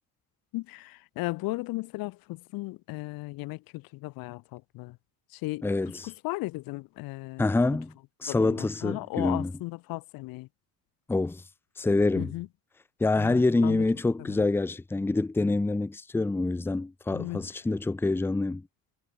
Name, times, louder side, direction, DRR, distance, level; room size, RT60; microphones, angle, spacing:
voice 1, 0.5-5.0 5.3-5.7 6.0-7.5 8.3-10.5 12.1-12.5 13.2-13.9 14.2-14.5 17.1-17.5, left 21 dB, 85° left, 1.6 m, -36 dB
voice 2, 5.6-6.1 7.4-7.9 8.2-9.5 11.1-11.4 11.8-12.3 13.0-18.7, left 2 dB, 5° left, 0.8 m, -26 dB
cardioid pair, 155°, 34 cm